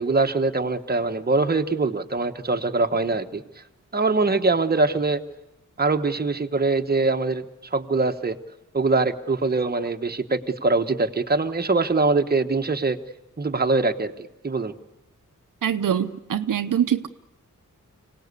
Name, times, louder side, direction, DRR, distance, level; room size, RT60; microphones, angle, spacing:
voice 1, 0.0-3.6 3.9-5.2 5.8-8.4 8.7-13.0 13.4-14.1 14.4-14.7, right 3 dB, 30° right, 6 dB, 1.2 m, -23 dB
voice 2, 15.6-17.1, right 9 dB, 85° right, 9 dB, 0.8 m, -23 dB
25.0 x 18.0 x 8.2 m, 0.95 s
wide cardioid pair, 85°, 31 cm